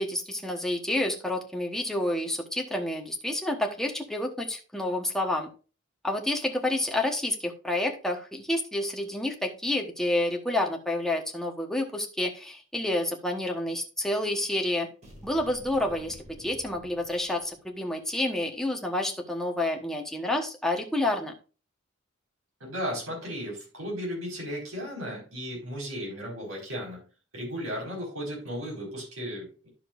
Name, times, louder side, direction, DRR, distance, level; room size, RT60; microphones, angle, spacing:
voice 1, 0.0-5.5 6.0-14.9 15.2-21.3, left 1 dB, ahead, 1 dB, 1.1 m, -29 dB
sound 1, 15.0-17.8, equal, 35° right, 2.2 m, -50 dB
voice 2, 22.6-27.1 27.3-29.7, equal, 80° right, -1 dB, 4.8 m, -35 dB
11.0 x 6.7 x 2.5 m, 0.35 s
head